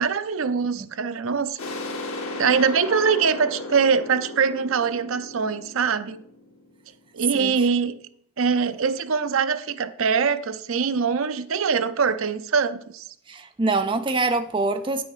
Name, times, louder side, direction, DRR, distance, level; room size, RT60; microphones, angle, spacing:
voice 1, 0.0-1.6 2.3-6.2 7.1-7.9 8.4-13.0, right 6 dB, 70° right, 13 dB, 0.5 m, -23 dB
sound 1, 1.6-7.1, left 2 dB, 85° left, 1.5 m, -35 dB
voice 2, 13.3-15.0, right 3 dB, 25° right, 7 dB, 0.4 m, -24 dB
9.2 x 6.1 x 4.9 m, 0.66 s
head